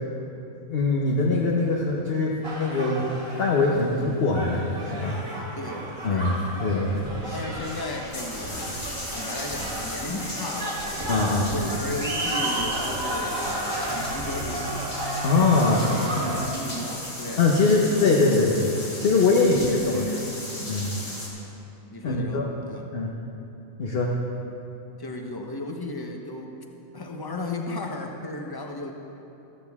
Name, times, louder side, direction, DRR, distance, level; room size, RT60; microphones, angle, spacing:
voice 1, 0.7-3.1 3.4-5.2 6.0-6.3 6.6-7.4 11.1-11.7 15.2-15.8 17.4-18.7 19.0-19.6 19.9-20.1 20.7-21.0 22.0-22.4 22.9-23.1 23.8-24.1, left 3 dB, 45° left, -2 dB, 1.2 m, -22 dB
sound 1, 2.4-16.5, right 1 dB, 75° right, 2.7 m, -32 dB
voice 2, 5.5-6.8 7.3-8.7 9.1-11.0 11.5-14.9 15.6-18.5 19.3-20.7 21.9-22.9 25.0-26.5 26.9-28.9, left 2 dB, 20° left, 2 dB, 0.9 m, -35 dB
sound 2, 6.9-7.0 7.4-21.3, left 1 dB, 65° left, 3.0 m, -36 dB
15.0 x 13.5 x 3.6 m, 2.9 s
omnidirectional pair, 1.4 m